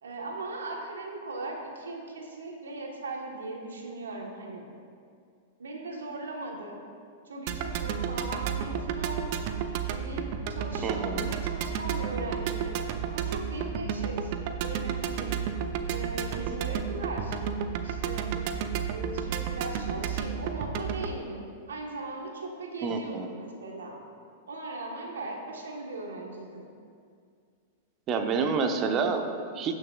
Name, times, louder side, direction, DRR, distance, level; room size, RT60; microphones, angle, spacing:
voice 1, 0.0-4.7 5.6-6.8 7.2-9.4 9.9-12.8 13.1-14.3 14.6-15.3 15.8-17.4 17.8-18.3 18.8-24.0 24.5-26.7, right 2 dB, 80° right, 1 dB, 1.4 m, -38 dB
sound 1, 7.5-21.2, right 7 dB, 55° right, 0.5 m, -32 dB
voice 2, 10.8-11.3 22.8-23.3 28.1-29.8, right 5 dB, 35° right, 5 dB, 0.9 m, -28 dB
17.5 x 6.2 x 2.5 m, 2.2 s
hypercardioid pair, 100°, 0 cm